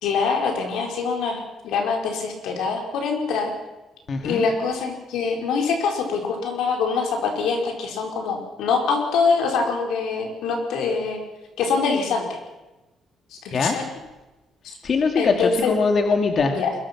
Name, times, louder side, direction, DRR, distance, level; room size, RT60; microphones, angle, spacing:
voice 1, 0.0-3.5 4.2-11.2 11.6-12.4 13.3-13.8 14.6-14.7 15.2-15.7 16.4-16.7, left 5 dB, 85° left, 2 dB, 4.8 m, -24 dB
voice 2, 4.1-4.4 13.5-13.8 14.8-16.5, left 4 dB, 50° left, 4 dB, 2.2 m, -22 dB
22.5 x 21.5 x 6.0 m, 1.1 s
cardioid pair, 90°, 0 cm